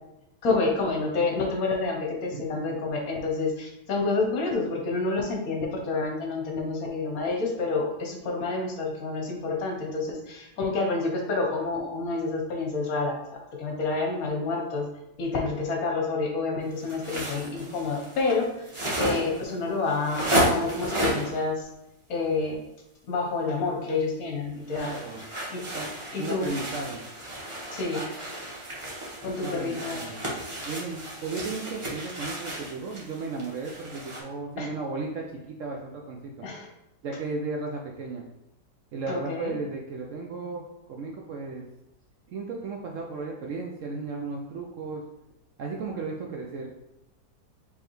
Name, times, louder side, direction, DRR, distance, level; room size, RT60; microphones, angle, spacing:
voice 1, 0.4-14.9 15.2-18.7 19.0-21.7 22.1-22.6 23.1-24.9 25.5-25.6 26.1-26.5 27.7-28.1 29.2-30.0 34.6-34.7 36.4-36.7 39.1-39.5, left 3 dB, 65° left, 1 dB, 1.3 m, -28 dB
voice 2, 2.3-2.8 24.8-25.2 25.7-25.9 26.2-27.0 29.4-30.2 30.6-36.4 37.0-38.2 38.9-40.6 40.9-41.7 42.3-45.0 45.6-46.7, right 3 dB, 65° right, 0 dB, 0.8 m, -35 dB
sound 1, 16.8-21.4 24.7-34.2, right 1 dB, 25° right, 0.8 m, -32 dB
5.1 x 3.4 x 3.0 m, 0.89 s
omnidirectional pair, 1.8 m